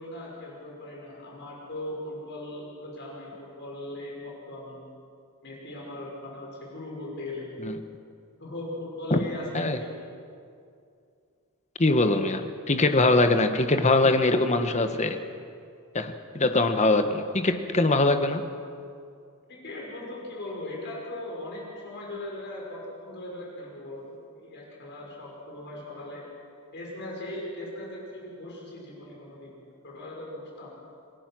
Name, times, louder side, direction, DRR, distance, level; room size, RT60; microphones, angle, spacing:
voice 1, 0.0-4.8 5.4-7.5 8.4-10.0 19.5-26.3 26.7-30.7, left 1 dB, 50° left, -3 dB, 6.1 m, -39 dB
voice 2, 11.8-15.2 15.9-18.4, left 2 dB, 30° left, 7 dB, 1.3 m, -22 dB
27.5 x 20.0 x 6.2 m, 2.4 s
head